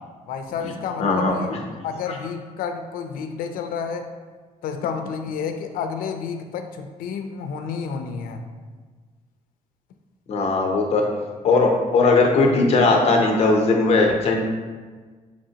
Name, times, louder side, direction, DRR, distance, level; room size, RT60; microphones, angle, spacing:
voice 1, 0.2-1.5 1.8-4.1 4.6-8.4, left 6 dB, 90° left, 6 dB, 0.4 m, -30 dB
voice 2, 1.0-1.6 2.1-2.2 10.3-11.0 11.4-14.4, left 3 dB, 45° left, 1 dB, 0.7 m, -18 dB
5.9 x 2.9 x 2.8 m, 1.4 s
cardioid pair, 160°, 14 cm